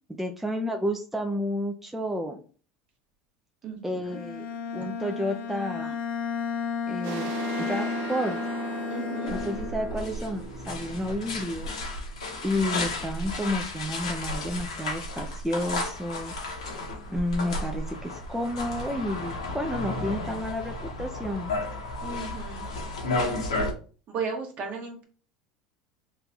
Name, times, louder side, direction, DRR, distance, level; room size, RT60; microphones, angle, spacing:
voice 1, 0.1-2.4 3.8-4.5 4.7-6.0 6.9-8.4 9.3-11.7 12.4-16.3 17.1-21.5, left 1 dB, 5° right, 4 dB, 0.4 m, -31 dB
voice 2, 3.6-4.2 8.9-9.3 22.0-22.7 24.1-25.0, right 5 dB, 45° right, 2 dB, 1.1 m, -35 dB
Bowed string instrument, 4.0-10.1, left 7 dB, 50° left, 0.7 m, -33 dB
sound 1, 7.0-12.5, right 6 dB, 65° right, 0.6 m, -38 dB
sound 2, 9.2-23.7, left 2 dB, 90° left, 0.9 m, -33 dB
3.2 x 2.5 x 3.3 m, 0.39 s
hypercardioid pair, 85°, 3 cm